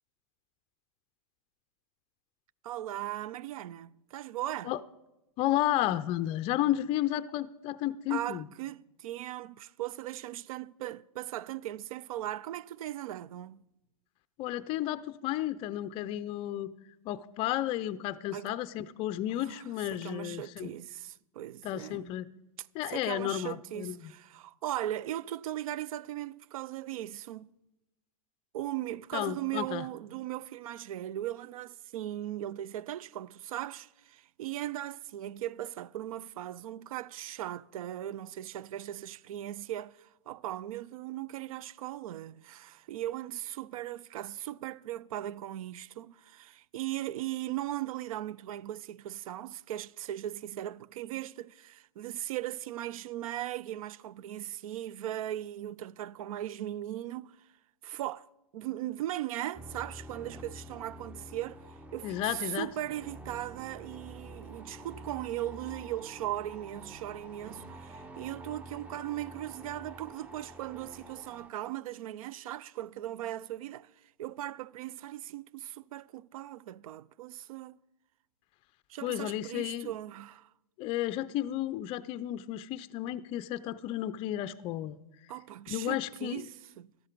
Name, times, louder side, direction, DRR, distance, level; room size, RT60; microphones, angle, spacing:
voice 1, 2.6-4.7 8.1-13.6 18.3-18.6 19.5-19.6 19.9-22.1 22.9-27.5 28.5-57.5 57.8-58.3 58.5-61.6 61.9-73.9 74.2-77.8 78.9-80.5 85.3-86.9, right 13 dB, 70° right, 0.5 m, -38 dB
voice 2, 5.4-8.5 14.4-16.7 17.1-20.7 21.6-22.3 22.7-24.1 29.1-29.8 62.0-62.7 79.0-79.9 80.8-85.0 85.7-86.5, left 13 dB, 30° left, 0.4 m, -32 dB
sound 1, 59.5-71.5, right 1 dB, 5° right, 0.6 m, -48 dB
13.5 x 12.5 x 4.5 m
hypercardioid pair, 130°, 19 cm